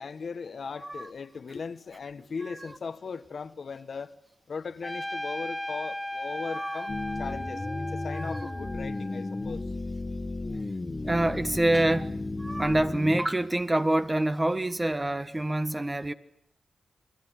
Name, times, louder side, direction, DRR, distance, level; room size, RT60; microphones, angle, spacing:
voice 1, 0.0-4.2 4.5-9.6, left 5 dB, 65° left, 1.4 m, -38 dB
Trumpet, 4.8-9.5, left 1 dB, 5° left, 1.6 m, -36 dB
voice 2, 6.5-6.9 8.1-8.5 11.0-16.1, right 1 dB, 20° right, 1.5 m, -27 dB
sound 1, 6.9-13.2, left 2 dB, 30° left, 1.8 m, -34 dB
28.5 x 20.5 x 9.9 m
cardioid pair, 80°, 0 cm